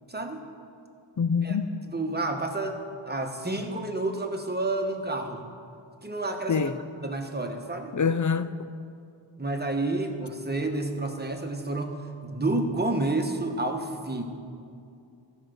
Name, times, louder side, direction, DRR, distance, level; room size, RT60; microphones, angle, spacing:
voice 1, 0.1-0.5 1.4-1.6 1.9-5.4 6.0-6.7 7.0-7.9 9.4-11.9 12.2-14.2, right 2 dB, 20° right, 1.1 m, -30 dB
voice 2, 1.2-1.7 6.5-6.8 7.9-8.7, left 5 dB, 40° left, 0.5 m, -25 dB
14.5 x 5.0 x 6.4 m
wide cardioid pair, 40°, 48 cm